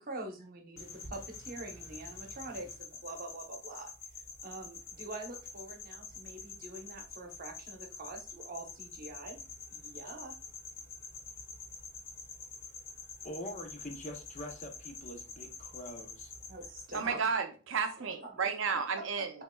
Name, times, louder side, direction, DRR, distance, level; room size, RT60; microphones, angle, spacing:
voice 1, 0.0-3.9 4.4-9.4 9.7-10.3 16.5-17.4 18.0-18.1 18.4-18.5, right 2 dB, 40° right, 0.9 m, -45 dB
sound 1, 0.8-17.1, left 4 dB, 70° left, 2.5 m, -47 dB
voice 2, 13.2-16.3, left 1 dB, 35° left, 0.7 m, -44 dB
voice 3, 16.9-19.3, right 5 dB, 60° right, 0.6 m, -32 dB
5.3 x 3.6 x 2.2 m
head